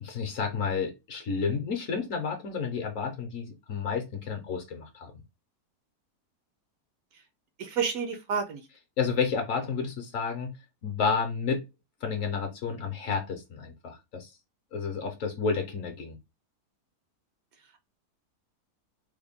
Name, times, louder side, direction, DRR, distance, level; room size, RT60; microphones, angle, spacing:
voice 1, 0.0-5.1 9.0-10.5 10.8-11.6 12.0-14.3 14.7-16.2, left 5 dB, 60° left, 0.9 m, -31 dB
voice 2, 7.6-8.7, right 6 dB, 70° right, 0.9 m, -30 dB
3.5 x 2.2 x 3.4 m
omnidirectional pair, 1.8 m